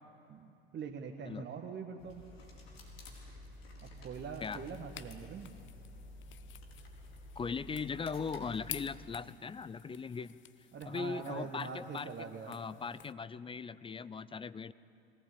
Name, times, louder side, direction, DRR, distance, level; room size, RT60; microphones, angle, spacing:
voice 1, 0.3-2.2 3.8-5.5 10.7-12.6, right 5 dB, 35° right, 3 dB, 1.6 m, -43 dB
sound 1, 2.0-9.0, left 1 dB, 75° left, 4.5 m, -51 dB
sound 2, 4.1-13.1, left 12 dB, 40° left, 0.9 m, -52 dB
voice 2, 7.4-10.4 10.8-14.7, left 5 dB, 15° left, 16 dB, 0.5 m, -39 dB
22.0 x 18.0 x 8.5 m, 2.8 s
figure-of-eight pair, 70°, 31 cm